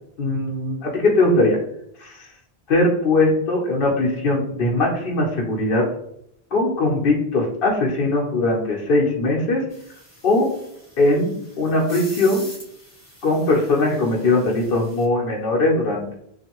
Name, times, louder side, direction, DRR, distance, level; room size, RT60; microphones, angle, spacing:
voice 1, 0.2-1.6 2.0-2.3 2.7-5.9 6.5-9.6 10.2-10.5 11.0-12.5 13.2-16.1, left 2 dB, 65° left, -2 dB, 0.8 m, -20 dB
sound 1, 9.7-15.1, left 1 dB, 15° left, 0.9 m, -44 dB
2.6 x 2.4 x 2.8 m, 0.71 s
omnidirectional pair, 1.0 m